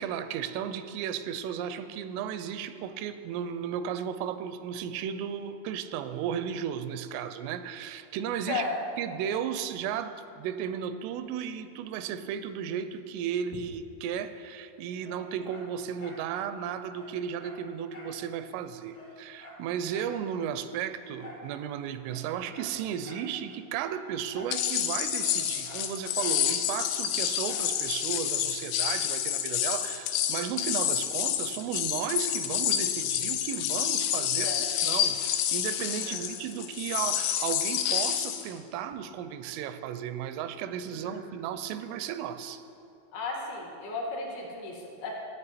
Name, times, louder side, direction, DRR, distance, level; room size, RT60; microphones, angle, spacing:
voice 1, 0.0-8.6 9.0-34.5 34.8-42.6, right 8 dB, 85° right, 11 dB, 3.1 m, -34 dB
Dog, 15.0-16.3 16.6-16.7 16.9-18.2 18.5-18.6 18.9-20.2 21.2-21.5 22.0-23.3 24.3-24.6 24.9-26.4 27.4-27.7 28.2-28.3, left 1 dB, 50° left, 0.7 m, -48 dB
sound 1, 24.5-38.5, left 10 dB, 85° left, 3.0 m, -29 dB
voice 2, 40.9-41.2 43.1-45.1, left 3 dB, 65° left, -1 dB, 2.7 m, -35 dB
13.5 x 8.8 x 4.2 m, 2.7 s
omnidirectional pair, 5.6 m